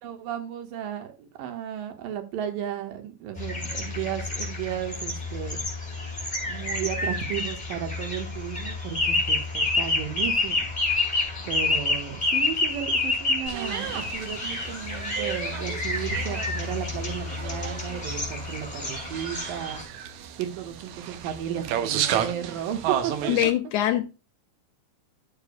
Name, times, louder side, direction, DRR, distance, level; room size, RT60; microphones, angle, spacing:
voice 1, 0.0-5.6 6.5-10.7 11.5-19.8 20.4-23.3, right 10 dB, 85° right, 3.0 m, -34 dB
sound 1, 3.4-19.8, left 2 dB, 10° left, 3.3 m, -29 dB
sound 2, 13.5-23.5, right 9 dB, 70° right, 2.0 m, -33 dB
voice 2, 23.3-24.0, left 12 dB, 75° left, 2.1 m, -23 dB
11.5 x 7.0 x 2.2 m
omnidirectional pair, 3.9 m